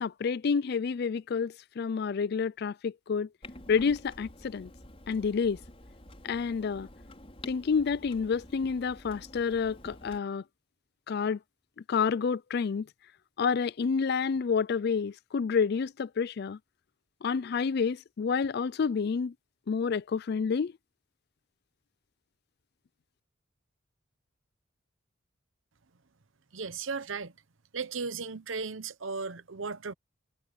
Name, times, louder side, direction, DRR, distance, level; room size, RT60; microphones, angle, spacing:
voice 1, 0.0-3.3 3.7-4.7 5.1-5.6 6.2-6.9 7.5-10.4 11.1-11.4 11.9-12.9 13.4-16.6 17.2-19.3 19.7-20.7, left 5 dB, 50° left, 0.4 m, -29 dB
Clock, 3.4-10.2, left 1 dB, 30° left, 5.6 m, -49 dB
voice 2, 26.5-27.3 27.7-29.9, right 4 dB, 75° right, 0.9 m, -36 dB
head